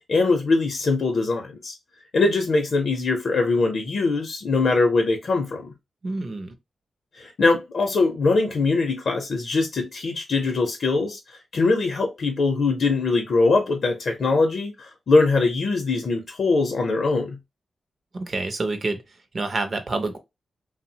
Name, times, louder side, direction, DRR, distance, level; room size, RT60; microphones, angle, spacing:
voice 1, 0.1-1.7 2.1-5.7 7.1-11.2 11.5-17.4, left 3 dB, 55° left, 0.5 m, -22 dB
voice 2, 6.0-6.5 18.1-19.0 19.3-20.2, right 3 dB, 35° right, 0.5 m, -27 dB
3.1 x 2.0 x 2.7 m
wide cardioid pair, 170°, 0 cm